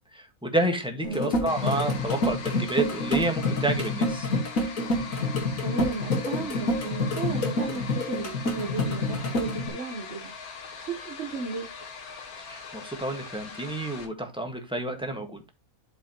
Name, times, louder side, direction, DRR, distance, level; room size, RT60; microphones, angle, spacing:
voice 1, 0.1-4.3 12.4-15.4, right 2 dB, 5° right, 1.5 m, -29 dB
sound 1, 1.0-9.7, left 1 dB, 70° left, 2.2 m, -28 dB
sound 2, 1.5-14.1, left 5 dB, 90° left, 1.9 m, -41 dB
voice 2, 5.6-10.3 10.8-11.7, right 4 dB, 50° right, 1.3 m, -34 dB
12.0 x 4.9 x 3.0 m
omnidirectional pair, 1.5 m